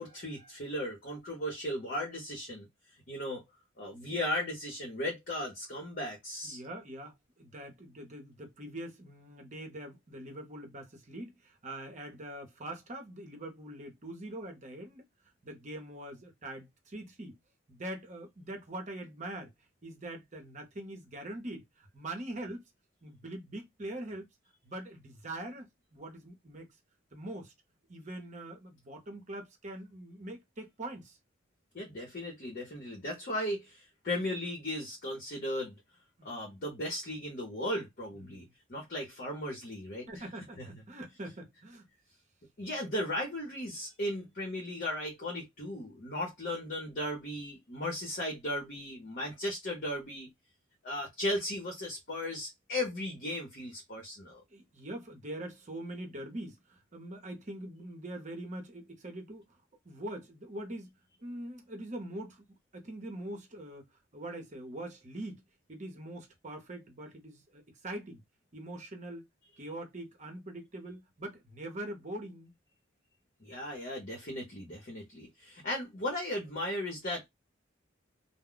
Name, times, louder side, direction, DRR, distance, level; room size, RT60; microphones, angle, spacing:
voice 1, 0.0-2.7 3.1-3.4 3.8-6.6 31.7-35.8 36.2-40.2 40.6-40.8 42.6-50.3 50.8-54.4 73.4-77.3, left 1 dB, 50° left, 0.8 m, -36 dB
voice 2, 6.4-15.0 15.4-17.4 17.7-19.5 19.8-22.6 23.0-24.3 24.6-26.7 27.1-27.5 27.9-31.2 36.2-36.6 38.1-38.5 40.1-41.9 54.5-59.6 59.8-60.9 61.2-63.9 64.1-65.4 65.7-68.2 68.5-69.3 69.6-72.5, right 1 dB, 40° right, 0.8 m, -43 dB
2.2 x 2.1 x 3.7 m
head